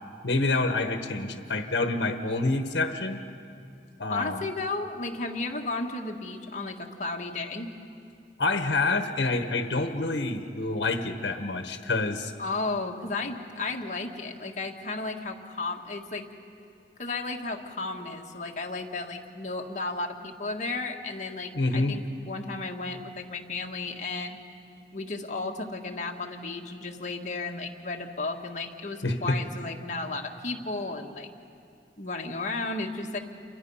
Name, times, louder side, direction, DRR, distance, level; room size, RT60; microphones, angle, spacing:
voice 1, 0.2-3.2 4.0-4.4 8.4-12.3 21.5-21.9 29.0-29.4, left 2 dB, 75° left, 6 dB, 1.2 m, -27 dB
voice 2, 4.1-7.7 12.4-16.3 17.0-24.4 24.9-31.3 32.0-33.2, left 3 dB, 45° left, 1 dB, 1.7 m, -34 dB
29.0 x 24.0 x 5.6 m, 2.4 s
head